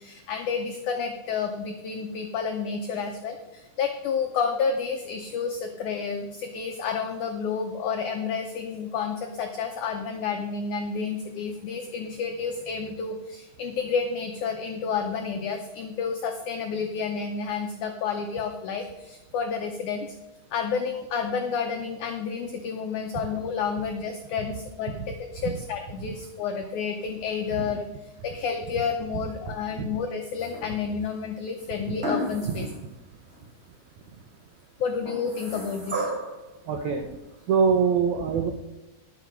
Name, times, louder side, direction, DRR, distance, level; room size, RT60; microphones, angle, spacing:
voice 1, 0.0-20.1 20.5-27.9 28.2-32.7 34.8-36.1, left 6 dB, 85° left, 5 dB, 1.7 m, -30 dB
sound 1, 30.4-31.0 32.0-32.9 33.3-33.4 35.0-36.4 37.5-37.6, equal, 20° right, 1.8 m, -32 dB
voice 2, 36.7-37.1 37.5-38.5, right 6 dB, 85° right, 4 dB, 1.6 m, -23 dB
10.5 x 7.9 x 5.2 m, 1.0 s
omnidirectional pair, 4.6 m